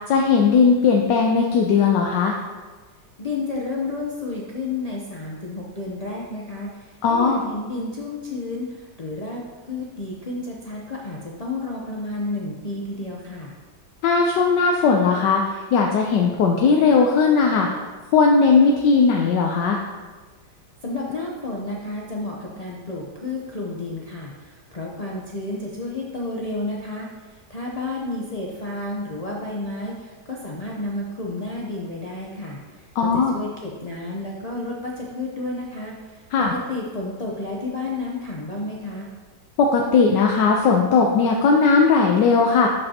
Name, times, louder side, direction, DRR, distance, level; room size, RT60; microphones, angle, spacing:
voice 1, 0.1-2.4 7.0-7.4 14.0-15.4 15.7-17.7 18.1-19.8 33.0-33.3 36.3-36.5 39.6-42.7, left 5 dB, 75° left, 1 dB, 1.3 m, -18 dB
voice 2, 3.2-13.6 20.8-39.1, left 2 dB, 60° left, -4 dB, 0.4 m, -31 dB
11.5 x 5.4 x 2.8 m, 1.4 s
omnidirectional pair, 1.9 m